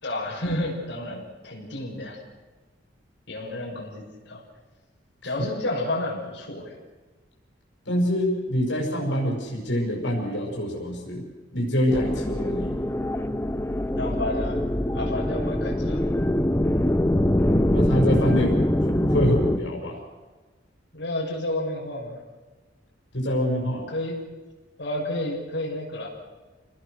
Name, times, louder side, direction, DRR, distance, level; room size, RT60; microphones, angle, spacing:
voice 1, 0.0-2.2 3.3-4.4 5.2-6.7 14.0-14.7 14.9-16.1 20.9-22.2 23.9-24.2 24.8-26.1, left 1 dB, 65° left, -4 dB, 6.5 m, -30 dB
voice 2, 7.8-11.2 11.5-12.7 17.7-20.0 23.1-23.9, equal, 85° left, -1 dB, 6.4 m, -25 dB
sound 1, 11.9-19.6, left 1 dB, 15° left, 0.8 m, -23 dB
29.0 x 19.5 x 6.7 m, 1.3 s
head